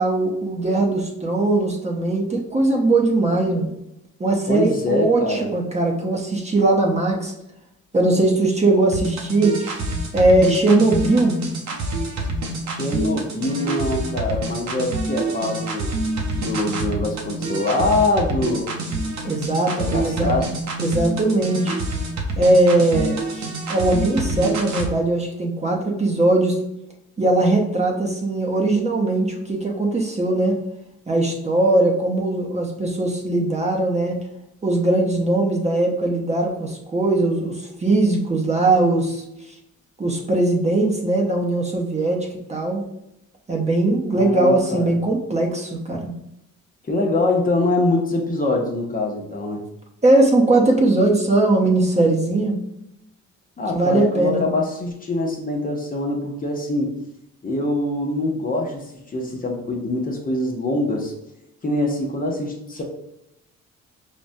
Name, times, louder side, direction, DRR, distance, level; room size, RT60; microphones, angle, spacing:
voice 1, 0.0-3.7 4.2-7.3 7.9-9.8 10.1-11.4 19.2-20.3 20.8-21.8 22.4-26.6 27.2-30.6 31.1-34.2 34.6-39.2 40.0-42.9 43.5-46.1 50.0-52.6 53.7-54.4, right 2 dB, 20° right, 0 dB, 0.7 m, -20 dB
voice 2, 4.5-5.5 12.7-15.9 16.4-18.7 19.8-20.5 44.1-44.9 46.9-49.6 53.6-56.9 57.4-61.1 61.6-62.8, left 2 dB, 30° left, 1 dB, 0.7 m, -24 dB
sound 1, 8.9-24.9, right 2 dB, 65° right, 0.7 m, -27 dB
4.8 x 2.1 x 2.6 m, 0.85 s
cardioid pair, 90°, 30 cm